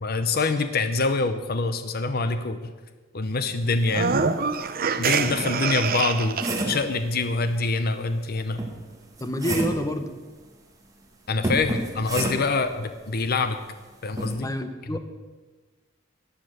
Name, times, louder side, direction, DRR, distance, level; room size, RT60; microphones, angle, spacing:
voice 1, 0.0-2.7 3.1-4.2 5.0-6.4 6.6-8.6 11.3-13.6 14.0-14.5 14.9-15.0, left 3 dB, 50° left, 9 dB, 0.8 m, -25 dB
sound 1, 3.8-6.8, right 5 dB, 50° right, 0.7 m, -25 dB
sound 2, 4.6-4.7 5.2-6.9 8.6-9.9 11.4-12.7 14.2-14.4, right 1 dB, 20° right, 1.9 m, -30 dB
voice 2, 9.2-10.1 14.4-15.0, equal, 20° left, 8 dB, 1.0 m, -28 dB
15.0 x 10.0 x 6.6 m, 1.4 s
head